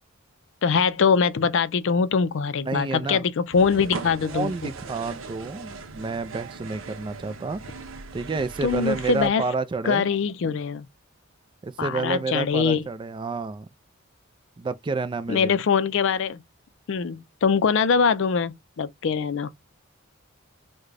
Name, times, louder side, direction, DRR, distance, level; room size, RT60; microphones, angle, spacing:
voice 1, 0.6-4.7 8.6-9.4 9.9-10.9 11.8-12.8 15.3-16.4 16.9-19.5, left 6 dB, 65° left, 0.4 m, -23 dB
voice 2, 2.6-3.2 4.3-7.6 8.1-10.1 11.6-13.7 14.6-15.5, right 4 dB, 25° right, 0.3 m, -29 dB
sound 1, 3.5-9.3, right 4 dB, 75° right, 0.7 m, -39 dB
3.6 x 2.2 x 3.2 m
head